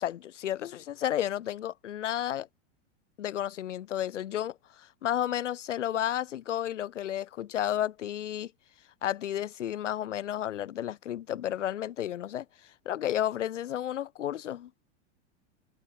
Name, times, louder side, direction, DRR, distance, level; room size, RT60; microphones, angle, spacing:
voice 1, 0.0-2.5 3.2-8.5 9.0-14.7, left 11 dB, 90° left, 3.6 m, -32 dB
supercardioid pair, 135°, 35 cm